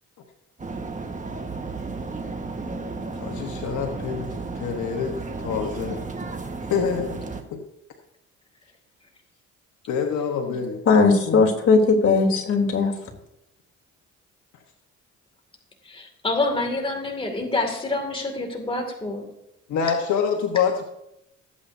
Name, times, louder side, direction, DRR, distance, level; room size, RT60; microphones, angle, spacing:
sound 1, 0.6-7.4, right 3 dB, 25° right, 1.4 m, -33 dB
voice 1, 3.2-4.3 4.5-6.0 6.7-7.2 7.5-7.6 9.9-10.8 11.3-11.5 19.7-20.8, left 6 dB, 75° left, 2 dB, 1.3 m, -26 dB
voice 2, 10.8-12.9, left 4 dB, 50° left, 0 dB, 3.3 m, -18 dB
voice 3, 15.8-19.3, left 2 dB, 20° left, 2 dB, 2.3 m, -27 dB
19.0 x 8.5 x 2.7 m, 0.84 s
cardioid pair, 90°, 30 cm